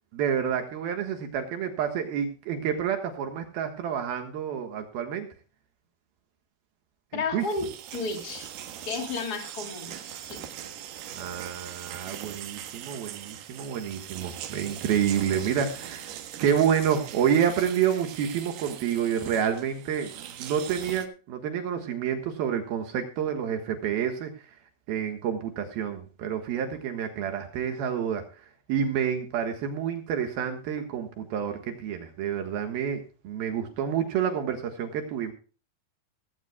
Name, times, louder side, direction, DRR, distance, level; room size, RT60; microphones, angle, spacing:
voice 1, 0.1-5.3 7.1-7.5 11.1-16.1 16.4-24.3 24.9-35.3, right 8 dB, 75° right, 5 dB, 3.2 m, -29 dB
voice 2, 7.1-7.7 7.9-8.5 8.9-10.0 10.2-10.5, left 4 dB, 30° left, 4 dB, 2.7 m, -32 dB
sound 1, 7.4-21.1, right 10 dB, 90° right, 3.4 m, -41 dB
17.5 x 16.0 x 2.3 m, 0.35 s
omnidirectional pair, 4.4 m